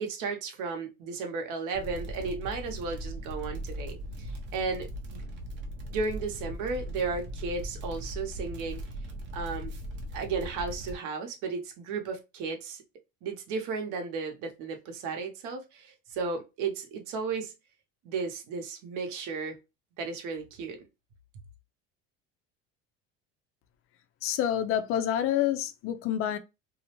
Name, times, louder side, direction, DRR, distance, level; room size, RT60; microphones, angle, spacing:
voice 1, 0.0-5.2 5.9-8.8 9.3-9.7 10.1-12.8 13.2-17.5 18.0-19.6 20.0-20.8, right 4 dB, 65° right, 0.9 m, -34 dB
sound 1, 1.7-11.0, equal, 35° right, 0.7 m, -39 dB
voice 2, 24.2-26.4, left 10 dB, 45° left, 0.4 m, -28 dB
2.5 x 2.0 x 2.9 m
cardioid pair, 130°, 32 cm